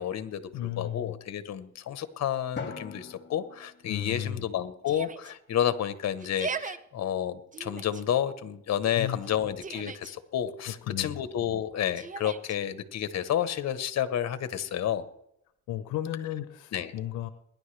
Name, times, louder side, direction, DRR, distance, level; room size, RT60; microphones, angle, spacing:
voice 1, 0.0-15.1 16.7-16.9, left 10 dB, 60° left, 12 dB, 1.1 m, -30 dB
voice 2, 0.5-1.1 3.8-4.5 9.0-9.2 10.7-11.2 15.7-17.3, left 11 dB, 90° left, 11 dB, 0.8 m, -34 dB
Drum, 2.6-4.8, left 5 dB, 35° left, 2.2 m, -43 dB
Yell, 4.9-5.3 6.2-6.8 7.5-8.0 9.2-10.1 12.0-12.6, right 5 dB, 25° right, 0.7 m, -38 dB
21.5 x 10.5 x 3.3 m, 0.78 s
cardioid pair, 90°, 30 cm